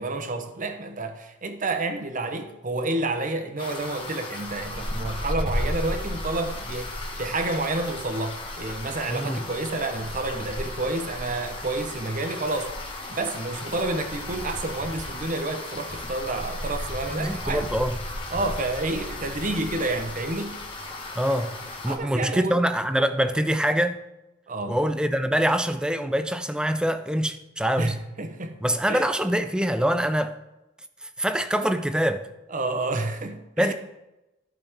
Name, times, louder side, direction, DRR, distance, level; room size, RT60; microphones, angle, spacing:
voice 1, 0.0-12.8 13.1-17.7 18.3-20.5 21.9-22.6 24.5-24.8 27.8-28.6 28.9-29.0 32.5-33.7, right 2 dB, 45° right, 0.9 m, -29 dB
sound 1, 3.6-22.0, left 1 dB, 30° left, 1.4 m, -34 dB
voice 2, 17.1-18.0 21.2-21.6 21.8-24.0 24.7-27.9 28.6-30.3 31.2-32.2 33.6-33.7, equal, 5° right, 0.5 m, -24 dB
14.0 x 5.2 x 3.6 m
head